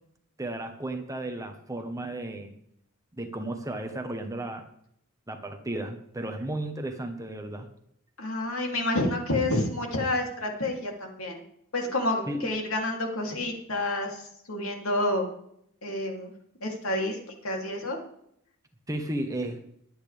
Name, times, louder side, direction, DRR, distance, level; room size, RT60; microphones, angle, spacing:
voice 1, 0.4-2.5 3.2-4.7 5.3-7.7 12.3-12.5 18.9-19.6, right 1 dB, 15° right, 5 dB, 1.2 m, -34 dB
voice 2, 8.2-11.4 11.7-15.3 15.8-16.3 16.6-18.0, left 1 dB, 70° left, 1 dB, 3.1 m, -29 dB
22.5 x 9.0 x 3.5 m, 0.71 s
head